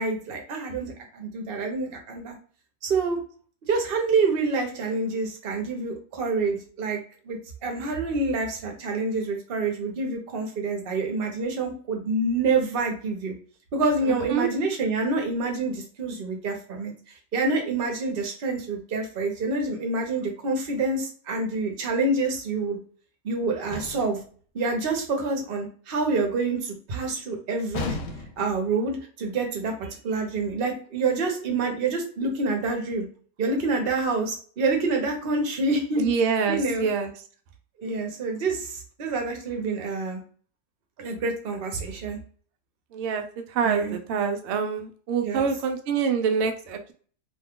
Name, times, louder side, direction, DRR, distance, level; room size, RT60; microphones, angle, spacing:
voice 1, 0.0-2.4 2.8-3.2 3.6-7.0 7.2-13.3 13.7-16.9 17.3-22.8 23.2-24.2 24.5-28.0 28.4-33.0 33.4-36.1 36.5-36.9 37.8-40.2 41.0-42.2 43.6-44.0 45.2-45.5, right 3 dB, 45° right, 2 dB, 0.8 m, -27 dB
sound 1, 23.7-24.3 27.7-28.6, left 3 dB, 80° left, 1.2 m, -33 dB
voice 2, 36.0-37.1 42.9-43.3 43.5-46.9, right 6 dB, 75° right, 5 dB, 0.6 m, -25 dB
2.8 x 2.3 x 3.6 m, 0.43 s
omnidirectional pair, 1.8 m